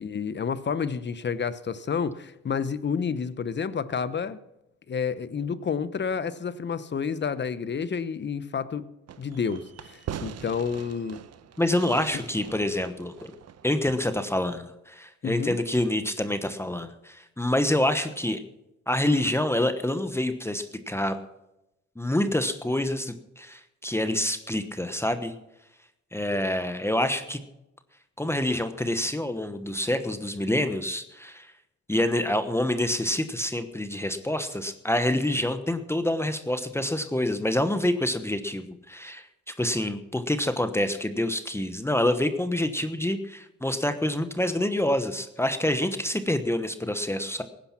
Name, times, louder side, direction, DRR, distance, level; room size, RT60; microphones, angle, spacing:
voice 1, 0.0-4.4 4.9-8.9 9.2-11.2 12.1-12.2 15.2-15.6, left 6 dB, 35° left, 1.0 m, -30 dB
Fireworks, 9.1-14.3, right 9 dB, 55° right, 1.0 m, -42 dB
voice 2, 11.6-13.3 13.6-18.4 18.9-21.2 22.0-25.3 26.1-27.4 28.2-31.5 31.9-39.3 39.6-47.4, left 1 dB, 10° left, 1.1 m, -27 dB
17.5 x 10.5 x 6.0 m
cardioid pair, 90°, 30 cm